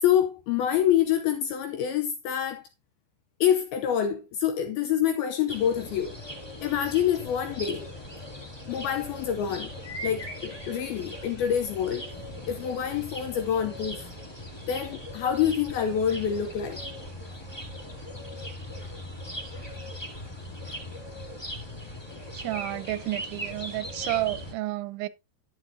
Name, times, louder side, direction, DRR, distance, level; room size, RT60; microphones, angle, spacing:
voice 1, 0.0-2.7 3.4-6.2 6.6-7.9 8.7-9.7 10.0-12.1 12.5-14.1 14.7-16.8, left 9 dB, 80° left, 2.2 m, -26 dB
sound 1, 5.5-24.5, equal, 35° left, 0.4 m, -39 dB
voice 2, 22.3-25.1, right 17 dB, 90° right, 3.1 m, -31 dB
11.5 x 9.4 x 2.7 m
omnidirectional pair, 5.2 m